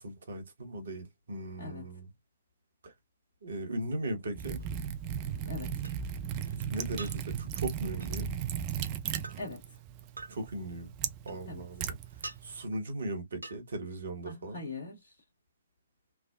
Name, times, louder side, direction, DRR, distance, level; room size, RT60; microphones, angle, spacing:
voice 1, 0.0-2.1 2.8-2.9 3.4-4.6 6.5-8.3 10.3-10.9 11.2-14.6, right 1 dB, 60° right, 1.1 m, -38 dB
Liquid, 4.3-12.6, right 8 dB, 30° right, 0.4 m, -36 dB
sound 1, 4.6-4.7 5.8-5.9 7.0-7.2 8.0-8.2 9.2-9.4 10.2-10.3 11.3-11.7 12.2-12.4 13.4-13.6, right 3 dB, 80° right, 0.5 m, -43 dB
voice 2, 5.3-5.8 9.4-9.6 11.5-11.6 14.2-15.1, left 3 dB, 55° left, 1.2 m, -41 dB
3.3 x 2.1 x 2.4 m
figure-of-eight pair, 125°, 0 cm